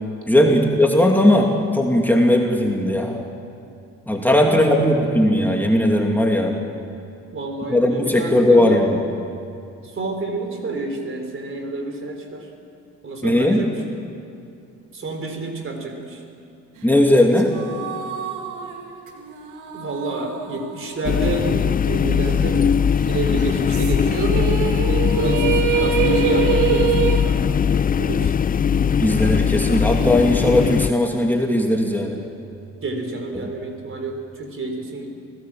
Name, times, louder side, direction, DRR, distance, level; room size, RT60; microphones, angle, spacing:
voice 1, 0.3-3.2 4.1-6.6 7.7-8.9 13.2-13.6 16.8-17.5 29.0-32.2, left 1 dB, 5° left, 0 dB, 2.4 m, -17 dB
voice 2, 4.4-5.1 7.3-8.8 9.8-12.5 13.0-13.7 14.9-16.2 19.7-22.8 23.1-24.5 24.7-27.6 28.0-28.4 32.8-35.1, right 2 dB, 45° right, 4 dB, 4.1 m, -29 dB
sound 1, 17.1-21.7 22.0-22.1 23.4-27.3, right 8 dB, 85° right, 2.2 m, -25 dB
sound 2, 21.0-30.9, left 7 dB, 30° left, 0.4 m, -20 dB
25.5 x 17.5 x 7.6 m, 2.5 s
cardioid pair, 90°, 30 cm